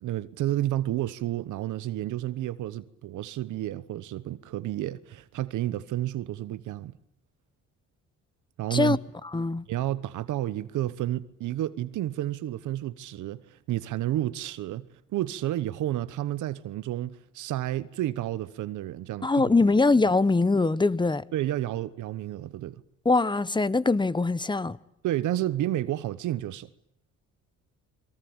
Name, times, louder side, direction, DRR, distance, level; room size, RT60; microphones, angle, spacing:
voice 1, 0.0-6.9 8.6-9.0 9.7-14.9 15.1-19.4 21.3-22.8 25.0-26.7, right 13 dB, 80° right, 1.0 m, -31 dB
voice 2, 8.7-9.7 19.2-21.2 23.0-24.8, left 3 dB, 15° left, 1.0 m, -23 dB
26.0 x 22.5 x 8.8 m
cardioid pair, 90°, 30 cm